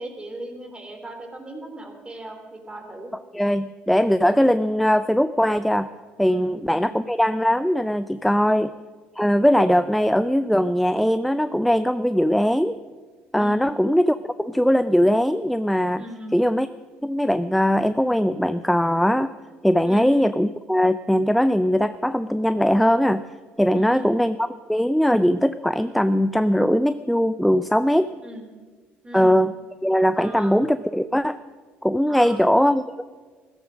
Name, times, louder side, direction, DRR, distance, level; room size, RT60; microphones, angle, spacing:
voice 1, 0.0-3.1 6.3-7.0 8.4-8.6 13.4-13.7 15.9-16.5 19.8-20.1 23.7-24.1 28.2-28.5 29.0-29.4 30.2-30.6 32.1-32.4, right 1 dB, 20° right, 4 dB, 3.2 m, -38 dB
voice 2, 3.3-5.9 6.2-8.7 9.2-12.8 13.3-16.0 16.3-16.7 17.0-19.3 19.6-23.2 23.6-28.1 29.1-29.5 29.8-31.4 31.8-32.9, equal, ahead, 13 dB, 0.5 m, -20 dB
14.0 x 12.5 x 6.3 m, 1.5 s
hypercardioid pair, 60°, 5 cm